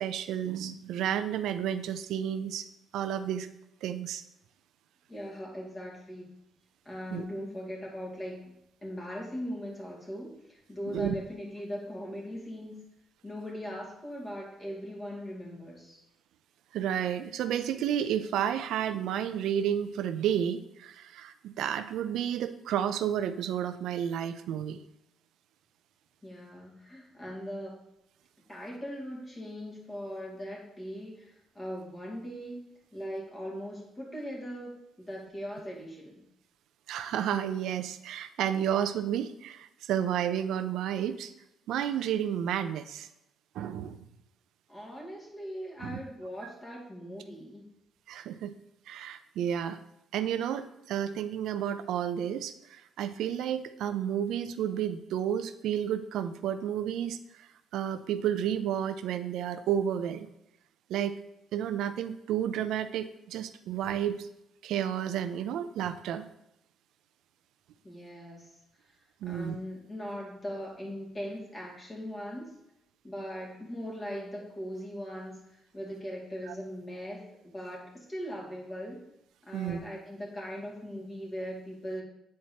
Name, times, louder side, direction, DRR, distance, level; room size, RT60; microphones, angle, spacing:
voice 1, 0.0-2.7 2.9-3.5 3.8-4.2 7.1-7.3 10.9-11.1 16.7-24.8 36.9-41.3 41.7-43.1 43.6-44.0 45.8-46.0 48.1-48.6 48.9-49.8 50.1-60.3 60.9-61.2 61.5-64.3 64.6-66.3 69.2-69.6 76.5-76.6 79.5-79.8, right 9 dB, 85° right, 11 dB, 0.4 m, -31 dB
voice 2, 5.1-6.3 6.8-8.5 8.8-12.8 13.2-16.0 26.2-27.8 28.5-36.2 44.7-47.7 67.8-68.5 69.2-72.6 73.0-79.1 79.4-82.0, equal, 25° left, -3 dB, 2.1 m, -40 dB
8.4 x 4.4 x 2.8 m, 0.85 s
cardioid pair, 90°, 0 cm